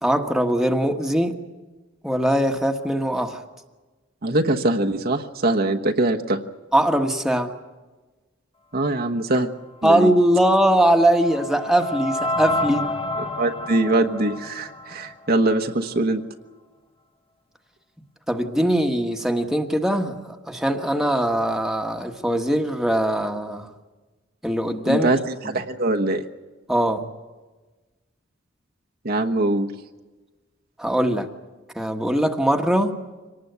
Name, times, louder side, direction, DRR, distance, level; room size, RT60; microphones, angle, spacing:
voice 1, 0.0-1.4 2.0-3.4 6.7-7.5 9.8-12.9 18.3-23.7 24.4-25.1 25.4-25.6 26.7-27.1 30.8-31.3 31.7-33.0, right 1 dB, ahead, 4 dB, 1.4 m, -21 dB
voice 2, 4.2-6.4 8.7-9.5 9.8-10.1 13.4-16.2 24.9-25.2 25.4-26.2 29.0-29.7, right 2 dB, 50° right, 4 dB, 1.2 m, -22 dB
sound 1, 10.4-15.6, left 2 dB, 30° left, 1.6 m, -30 dB
25.0 x 19.0 x 8.2 m, 1.2 s
head